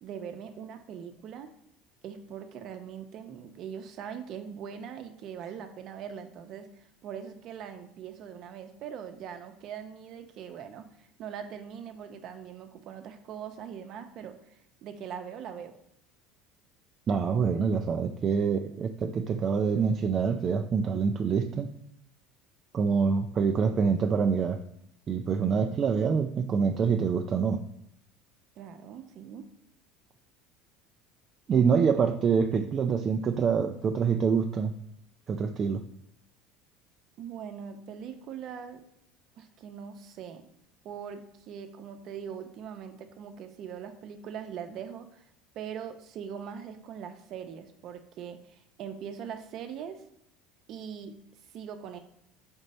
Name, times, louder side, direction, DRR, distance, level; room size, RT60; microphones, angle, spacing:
voice 1, 0.0-1.5 2.0-14.4 14.8-15.8 28.6-29.5 37.2-38.8 39.4-40.5 40.8-45.3 45.5-50.1 50.7-51.1 51.5-52.0, right 8 dB, 50° right, 7 dB, 0.8 m, -41 dB
voice 2, 17.1-21.7 22.7-24.6 25.1-27.6 31.5-34.7 35.3-35.8, right 6 dB, 35° right, 4 dB, 0.4 m, -26 dB
5.4 x 4.4 x 4.2 m, 0.75 s
supercardioid pair, 125°, 0 cm